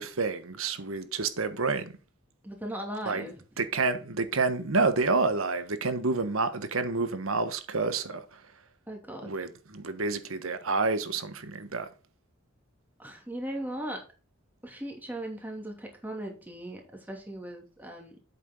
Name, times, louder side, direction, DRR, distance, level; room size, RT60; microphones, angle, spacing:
voice 1, 0.0-1.9 3.0-3.3 3.6-8.4 9.2-11.9, right 3 dB, 90° right, 1.3 m, -29 dB
voice 2, 2.4-3.4 8.9-9.4 13.0-14.0 14.6-18.2, right 1 dB, 10° right, 2.6 m, -38 dB
8.5 x 7.3 x 3.8 m
head